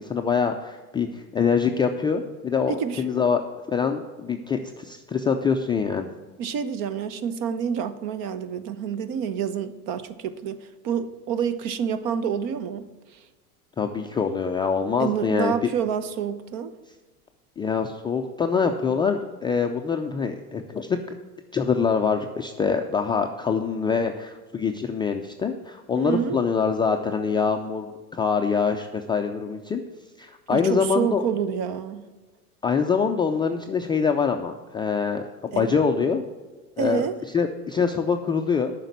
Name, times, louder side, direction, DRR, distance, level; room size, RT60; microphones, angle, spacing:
voice 1, 0.0-3.4 3.7-6.1 13.8-15.5 17.6-21.0 21.5-29.8 30.2-31.3 32.6-36.2 36.8-37.1 37.3-38.7, left 5 dB, 10° left, 2 dB, 0.3 m, -24 dB
voice 2, 2.7-3.0 6.4-12.9 15.0-16.7 26.0-26.4 30.5-32.0 35.5-35.7 36.8-37.1, right 8 dB, 50° right, 13 dB, 1.0 m, -28 dB
8.9 x 6.0 x 8.0 m, 1.3 s
hypercardioid pair, 95°, 44 cm